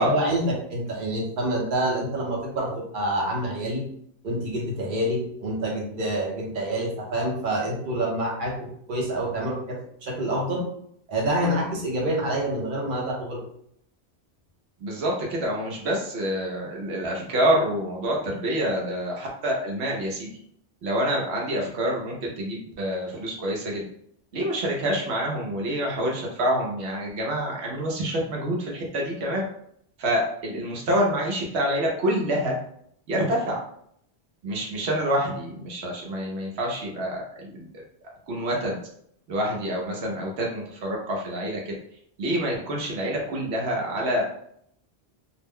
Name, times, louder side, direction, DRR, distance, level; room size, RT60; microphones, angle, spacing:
voice 1, 0.0-3.8 4.2-10.6 11.1-13.4, right 1 dB, 55° right, -2 dB, 0.9 m, -27 dB
voice 2, 14.8-20.3 20.8-23.8 24.3-29.4 30.0-32.6 33.1-33.6 34.4-37.7 38.3-38.8 39.3-41.7 42.2-44.2, equal, 85° right, -1 dB, 0.9 m, -27 dB
2.5 x 2.1 x 3.5 m, 0.68 s
omnidirectional pair, 1.1 m